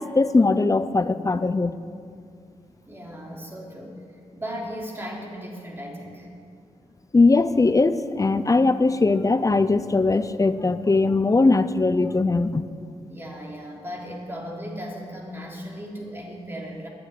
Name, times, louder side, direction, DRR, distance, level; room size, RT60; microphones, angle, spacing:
voice 1, 0.0-1.8 7.1-12.6, left 3 dB, 25° left, 12 dB, 0.6 m, -20 dB
voice 2, 2.9-4.0 4.3-6.3 13.1-16.9, equal, 20° right, -2 dB, 3.3 m, -36 dB
11.0 x 9.5 x 10.0 m, 2.3 s
cardioid pair, 85°, 12 cm